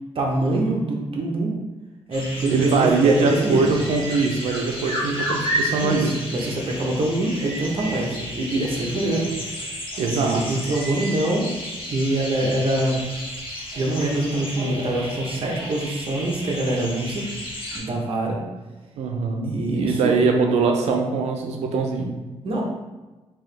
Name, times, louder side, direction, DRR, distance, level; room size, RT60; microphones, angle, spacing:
voice 1, 0.1-1.5 2.1-3.7 5.8-9.6 10.1-11.5 11.9-13.0 13.8-17.2 17.7-18.4 19.5-20.2 22.4-22.6, right 1 dB, 55° right, -1 dB, 0.9 m, -24 dB
sound 1, 2.1-17.8, equal, 50° left, 1.4 m, -32 dB
voice 2, 2.5-6.1 10.0-10.7 19.0-22.1, right 4 dB, 85° right, 3 dB, 0.6 m, -22 dB
3.6 x 2.9 x 3.3 m, 1.1 s
cardioid pair, 75°, 11 cm